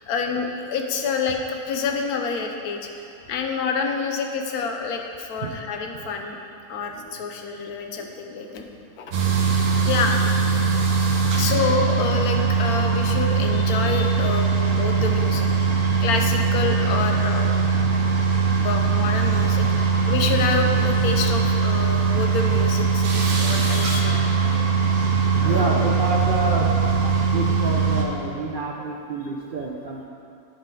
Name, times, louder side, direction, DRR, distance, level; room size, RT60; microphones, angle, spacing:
voice 1, 0.1-2.8 3.3-6.4 6.7-8.7 9.0-9.1 9.9-10.8 11.3-17.5 18.5-24.2 25.4-25.7, left 4 dB, 90° left, 3 dB, 1.2 m, -28 dB
industry grain silo loader motor air release, 9.1-28.1, right 5 dB, 90° right, 1.4 m, -21 dB
voice 2, 25.4-26.8 27.2-30.1, right 2 dB, 55° right, -2 dB, 0.6 m, -28 dB
9.9 x 5.7 x 3.9 m, 2.5 s
omnidirectional pair, 1.5 m